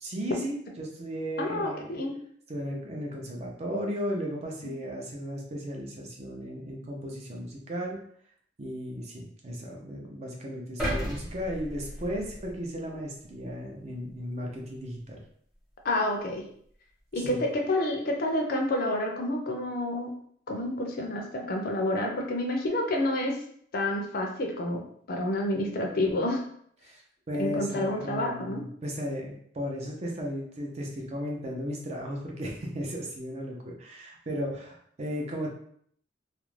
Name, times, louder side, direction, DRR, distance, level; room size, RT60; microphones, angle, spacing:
voice 1, 0.0-2.0 2.5-8.0 8.6-15.2 17.1-17.4 26.8-27.0 27.3-35.5, equal, 35° right, 0 dB, 0.5 m, -35 dB
voice 2, 1.4-2.1 15.8-16.4 17.1-20.2 20.5-23.4 23.7-24.8 25.1-26.4 27.4-28.6, left 1 dB, 50° left, 1 dB, 0.5 m, -29 dB
sound 1, 10.8-13.0 13.4-13.6, equal, ahead, 0.7 m, -34 dB
2.4 x 2.0 x 3.1 m, 0.64 s
head